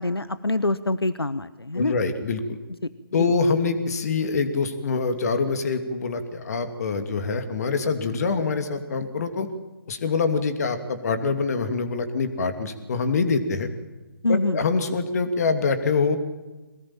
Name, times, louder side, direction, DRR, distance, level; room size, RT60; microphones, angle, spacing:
voice 1, 0.0-2.0 3.1-3.3 14.2-14.6, left 2 dB, 90° left, 14 dB, 1.0 m, -25 dB
voice 2, 1.7-2.6 3.1-9.5 9.9-13.7 14.3-16.2, left 4 dB, 40° left, 8 dB, 2.8 m, -25 dB
23.0 x 19.5 x 8.9 m, 1.1 s
figure-of-eight pair, 145°, 13 cm